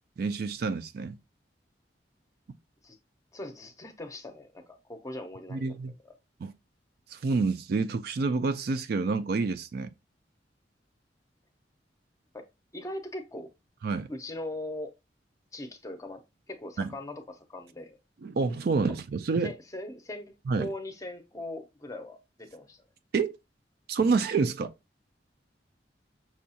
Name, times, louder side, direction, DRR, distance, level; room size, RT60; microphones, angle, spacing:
voice 1, 0.2-1.2 5.5-5.9 6.4-6.5 7.1-9.9 13.8-14.1 16.8-16.9 18.2-19.5 20.5-20.7 23.1-23.4 23.9-24.7, right 4 dB, 60° right, 0.4 m, -28 dB
voice 2, 3.3-5.6 12.3-12.4 12.7-13.5 14.1-14.9 15.5-16.2 16.5-18.0 19.4-22.8, left 1 dB, 20° left, 0.6 m, -40 dB
6.0 x 2.4 x 2.7 m
head